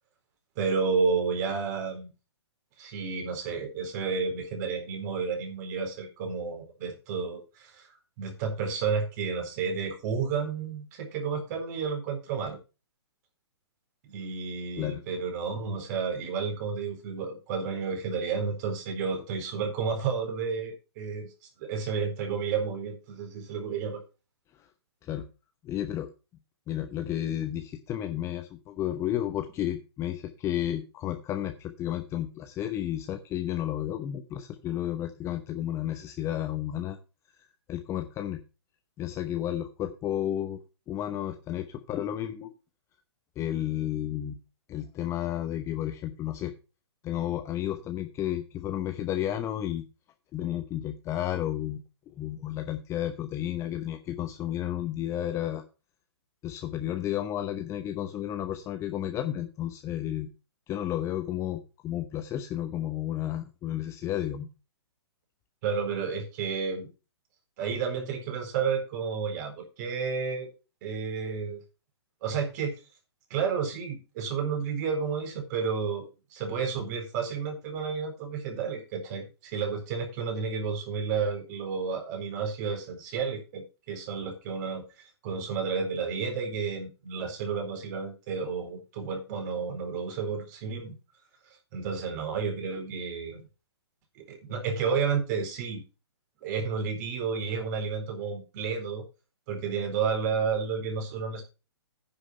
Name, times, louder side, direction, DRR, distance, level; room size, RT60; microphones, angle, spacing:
voice 1, 0.6-2.1 2.8-7.9 8.2-12.6 14.0-21.3 21.6-24.0 65.6-66.9 67.6-70.5 70.8-71.6 72.2-72.8 73.3-91.0 91.7-93.4 94.2-95.8 96.4-99.1 99.5-101.4, right 5 dB, 40° right, 4 dB, 4.2 m, -31 dB
voice 2, 25.6-26.1 26.7-37.0 37.7-38.4 39.0-40.6 40.9-42.5 43.4-44.4 44.7-46.5 47.0-49.9 50.3-51.8 52.1-55.6 56.4-60.3 60.7-64.5, left 12 dB, 20° left, 7 dB, 0.9 m, -32 dB
9.9 x 7.1 x 5.6 m, 0.32 s
hypercardioid pair, 135°, 14 cm